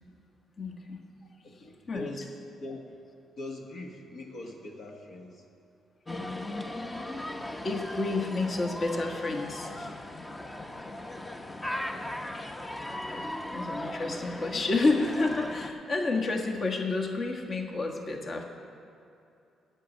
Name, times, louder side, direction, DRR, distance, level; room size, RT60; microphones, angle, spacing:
voice 1, 0.6-1.0 1.9-2.1 7.6-9.9 13.1-18.4, left 3 dB, 45° left, 2 dB, 1.4 m, -30 dB
voice 2, 1.4-2.9 3.4-5.5, left 2 dB, 65° left, 1 dB, 1.3 m, -42 dB
sound 1, 6.1-15.7, left 1 dB, 20° left, 0.8 m, -38 dB
10.5 x 7.7 x 8.2 m, 2.7 s
cardioid pair, 90°, 0 cm